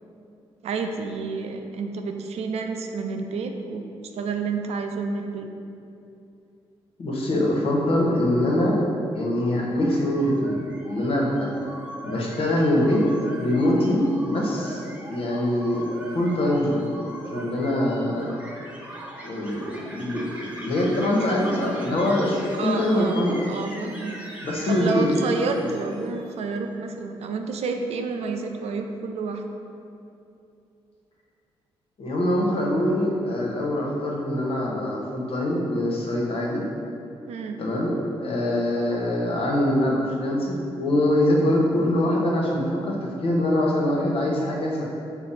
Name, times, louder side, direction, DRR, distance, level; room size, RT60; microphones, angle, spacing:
voice 1, 0.6-3.9 4.2-5.5 22.6-23.2 23.5-24.2 24.7-29.4 37.3-37.6, right 4 dB, 70° right, 5 dB, 0.4 m, -29 dB
voice 2, 7.0-8.9 9.1-11.5 12.0-14.8 15.1-16.8 17.3-18.4 19.2-23.5 24.4-25.1 25.6-25.7 32.0-36.7 37.6-44.9, left 1 dB, 55° left, -2 dB, 0.9 m, -23 dB
sound 1, 9.7-26.3, right 1 dB, 10° right, 0.8 m, -41 dB
5.7 x 2.0 x 4.0 m, 2.7 s
supercardioid pair, 60°, 11 cm